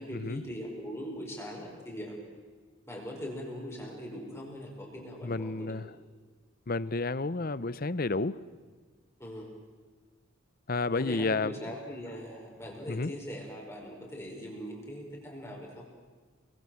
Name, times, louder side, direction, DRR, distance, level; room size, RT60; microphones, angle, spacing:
voice 1, 0.0-2.2 2.9-5.8 9.2-9.5 10.9-15.9, equal, 15° left, 5.2 m, -41 dB
voice 2, 5.2-5.9 6.7-8.4 10.7-11.6 12.9-13.1, left 3 dB, 45° left, 0.7 m, -31 dB
29.0 x 22.5 x 7.8 m
head